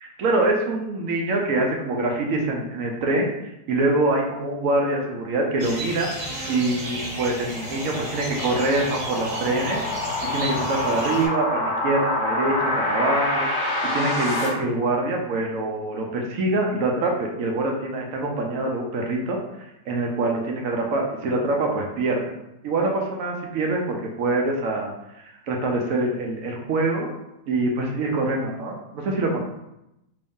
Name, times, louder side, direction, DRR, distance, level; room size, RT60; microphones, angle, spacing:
voice 1, 0.2-6.1 6.5-9.8 10.3-19.4 19.9-22.2 22.6-24.9 25.5-27.1 27.5-29.4, right 2 dB, 65° right, 0 dB, 0.9 m, -24 dB
sound 1, 5.6-11.3, right 1 dB, 45° right, 1.2 m, -34 dB
sound 2, 5.8-14.5, left 2 dB, 35° left, 0.8 m, -27 dB
3.0 x 2.6 x 3.5 m, 0.87 s
omnidirectional pair, 1.8 m